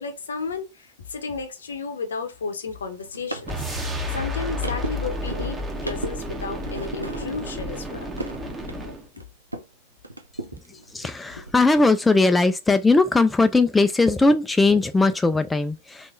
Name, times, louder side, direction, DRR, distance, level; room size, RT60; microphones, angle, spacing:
voice 1, 0.0-3.5 4.1-8.1 9.2-9.3 10.7-10.8, left 4 dB, 70° left, 0.7 m, -33 dB
sound 1, 2.7-9.7 10.0-11.5, right 1 dB, 85° right, 0.5 m, -37 dB
sound 2, 3.4-9.1, left 1 dB, 10° right, 0.9 m, -31 dB
voice 2, 10.9-16.1, left 3 dB, 10° left, 0.3 m, -19 dB
3.5 x 2.9 x 2.5 m
figure-of-eight pair, 90°, 0 cm